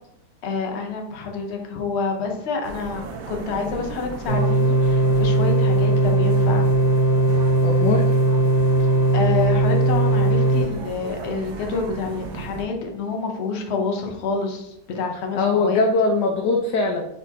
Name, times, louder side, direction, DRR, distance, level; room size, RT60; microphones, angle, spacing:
voice 1, 0.4-6.7 8.8-8.9 9.1-15.8, left 4 dB, 60° left, 2 dB, 0.7 m, -28 dB
sound 1, 2.6-12.7, right 4 dB, 80° right, 1.2 m, -36 dB
sound 2, 4.3-10.6, right 2 dB, 20° left, 0.8 m, -18 dB
voice 2, 7.6-8.1 15.3-17.1, left 3 dB, 75° left, 1 dB, 1.2 m, -21 dB
4.2 x 4.0 x 2.8 m, 0.80 s
omnidirectional pair, 1.9 m